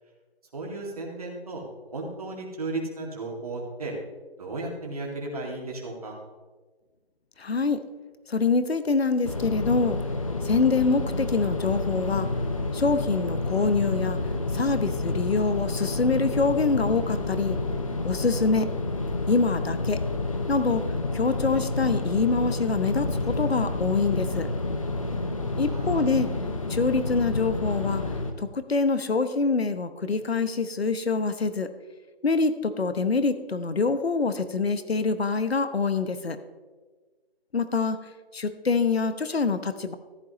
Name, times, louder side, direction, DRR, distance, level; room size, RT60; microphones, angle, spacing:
voice 1, 0.5-1.6 1.9-3.9 4.4-6.2 25.6-26.1, right 2 dB, 35° right, -1 dB, 2.3 m, -34 dB
voice 2, 7.4-7.8 8.3-10.0 10.4-12.3 12.7-14.2 14.5-17.6 18.0-18.7 19.3-20.0 20.5-20.9 21.1-24.5 25.6-26.3 26.7-28.0 28.4-31.7 32.2-36.4 37.5-38.0 38.3-40.0, left 4 dB, 75° left, 11 dB, 1.0 m, -25 dB
sound 1, 9.2-28.3, left 2 dB, 35° left, 0.8 m, -29 dB
14.5 x 10.5 x 3.1 m, 1.3 s
figure-of-eight pair, 165°, 31 cm